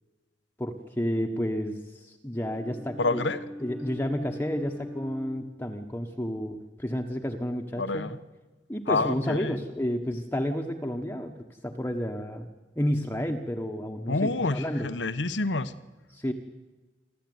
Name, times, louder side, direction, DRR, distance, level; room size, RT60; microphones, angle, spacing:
voice 1, 0.6-3.2 3.6-8.1 8.7-12.5 12.7-14.9 16.1-16.3, equal, 10° left, 2 dB, 1.3 m, -31 dB
Bowed string instrument, 2.3-6.4, left 1 dB, 10° right, 1.5 m, -42 dB
voice 2, 3.0-3.4 7.8-8.2 8.9-9.6 14.1-15.7, left 3 dB, 80° left, 12 dB, 1.1 m, -28 dB
27.5 x 13.0 x 9.5 m, 1.2 s
head